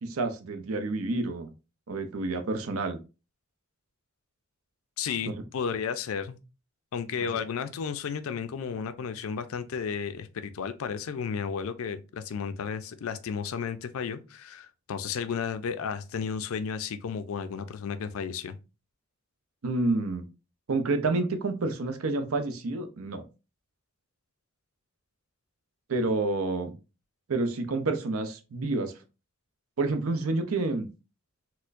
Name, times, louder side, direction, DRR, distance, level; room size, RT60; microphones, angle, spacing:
voice 1, 0.0-1.5 1.9-3.0 5.2-5.3 19.6-20.2 20.7-23.2 25.9-26.8 27.3-28.9 29.8-30.9, right 3 dB, 80° right, 0.6 m, -29 dB
voice 2, 5.0-6.4 6.9-18.6, left 6 dB, 75° left, 0.4 m, -33 dB
4.3 x 2.1 x 2.5 m
head